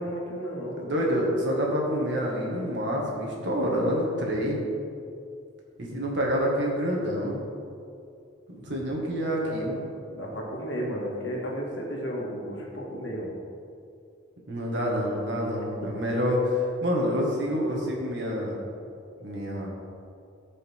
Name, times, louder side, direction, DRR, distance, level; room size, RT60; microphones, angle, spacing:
voice 1, 0.0-0.9 9.4-9.8 10.1-13.3, equal, 70° left, -3 dB, 2.0 m, -33 dB
voice 2, 0.8-4.6 5.8-7.4 8.5-9.8 14.5-18.5 19.2-19.7, equal, 65° right, -2 dB, 2.0 m, -27 dB
15.5 x 5.5 x 3.7 m, 2.5 s
head